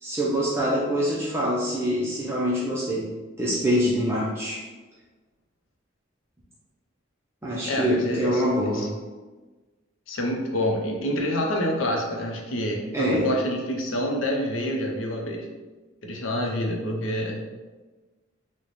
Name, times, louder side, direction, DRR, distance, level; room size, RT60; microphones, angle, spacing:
voice 1, 0.0-3.1 3.4-4.6 7.4-8.9 12.9-13.3, equal, 15° right, -6 dB, 0.5 m, -25 dB
voice 2, 7.7-8.4 8.7-8.9 10.1-15.5 16.0-17.4, left 1 dB, 85° left, 1 dB, 0.6 m, -27 dB
3.1 x 2.1 x 4.0 m, 1.3 s
head